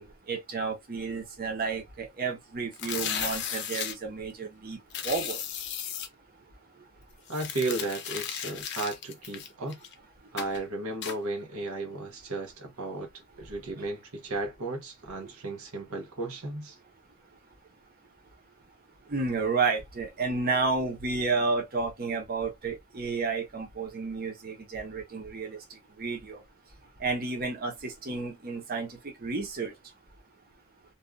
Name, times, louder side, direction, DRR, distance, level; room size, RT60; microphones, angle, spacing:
voice 1, 0.0-5.4 19.1-26.4 27.0-29.7, right 4 dB, 45° right, 0.8 m, -31 dB
sound 1, 2.7-3.9 4.9-6.1 7.3-9.9 10.4-10.6 11.0-11.2, left 8 dB, 55° left, 0.5 m, -35 dB
voice 2, 7.3-9.8 10.3-13.1 13.4-16.8, right 2 dB, 85° right, 0.9 m, -34 dB
2.7 x 2.3 x 2.3 m
head